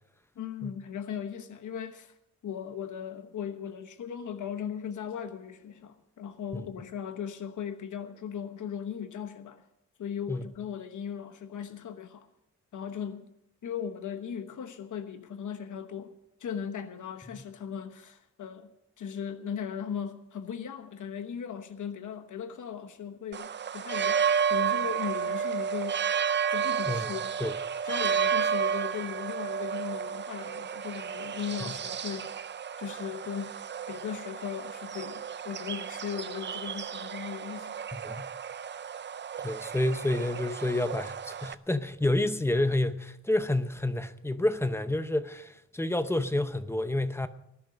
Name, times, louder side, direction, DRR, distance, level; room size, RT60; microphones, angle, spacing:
voice 1, 0.4-2.1 2.4-9.6 10.0-12.3 12.7-13.3 13.6-16.1 16.4-18.7 19.0-26.1 26.5-27.3 27.8-32.4 32.8-33.5 33.9-37.9, left 8 dB, 90° left, 1.1 m, -38 dB
sound 1, 23.3-41.5, right 7 dB, 40° right, 0.5 m, -32 dB
voice 2, 37.9-38.3 39.4-47.3, left 1 dB, 10° left, 0.7 m, -29 dB
19.0 x 11.0 x 5.1 m
wide cardioid pair, 150°, 30 cm